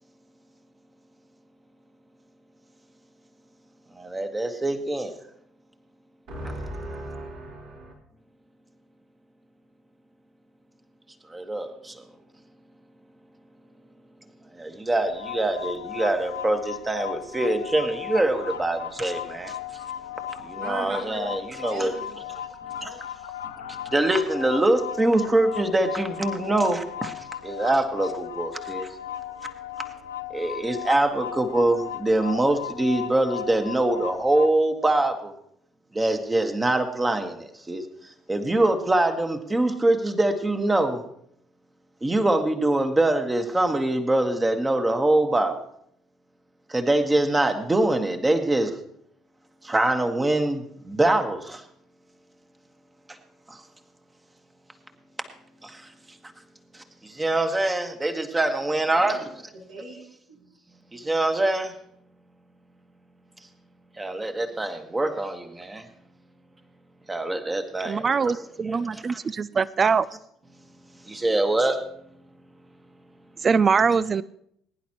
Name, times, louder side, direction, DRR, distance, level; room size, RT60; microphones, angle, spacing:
voice 1, 4.0-5.1 11.3-11.9 14.6-19.5 20.5-21.9 22.8-22.9 23.9-27.1 27.4-28.9 30.3-35.3 35.9-37.8 38.3-41.0 42.0-45.6 46.7-48.7 49.6-51.6 55.6-55.7 57.2-59.3 60.9-61.7 64.0-65.8 67.1-68.4 68.7-69.2 71.1-71.8, right 2 dB, 15° right, 6 dB, 1.6 m, -24 dB
voice 2, 6.3-7.9 20.6-21.3 21.7-22.2 58.9-60.4, right 1 dB, 60° right, -3 dB, 3.9 m, -38 dB
sound 1, 15.0-34.5, left 10 dB, 75° left, 0.5 m, -36 dB
voice 3, 67.8-70.1 73.4-74.2, right 5 dB, 35° right, 19 dB, 0.4 m, -22 dB
20.5 x 10.5 x 3.0 m, 0.70 s
figure-of-eight pair, 55°, 0 cm